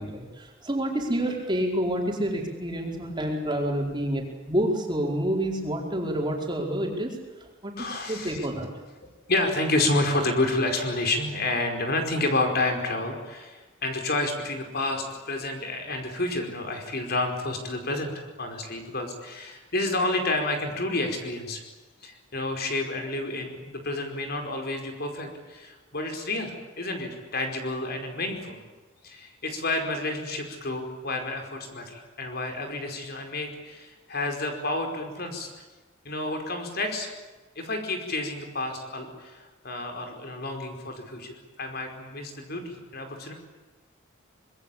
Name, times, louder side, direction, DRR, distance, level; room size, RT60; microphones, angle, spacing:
voice 1, 0.0-8.7, right 1 dB, 25° right, 0 dB, 4.8 m, -28 dB
voice 2, 7.8-8.4 9.3-21.6 22.0-28.6 29.0-35.5 36.0-37.1 37.5-43.3, left 2 dB, 50° left, 4 dB, 5.0 m, -30 dB
25.5 x 22.5 x 8.7 m, 1.2 s
head